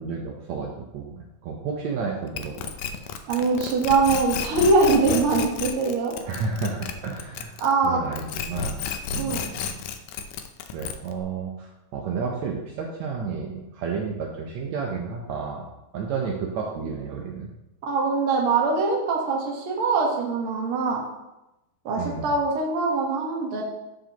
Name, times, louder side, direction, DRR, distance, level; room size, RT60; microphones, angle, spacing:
voice 1, 0.0-3.0 6.2-7.6 7.8-9.8 10.7-15.7 15.9-17.5 22.0-22.3, right 5 dB, 80° right, -1 dB, 1.6 m, -32 dB
sound 1, 2.4-7.9 8.1-11.2, left 7 dB, 80° left, 1.9 m, -31 dB
voice 2, 3.3-6.1 7.6-8.0 9.2-9.4 17.8-21.0 21.8-23.6, right 3 dB, 55° right, -1 dB, 1.6 m, -23 dB
13.5 x 5.1 x 3.0 m, 0.95 s
omnidirectional pair, 4.2 m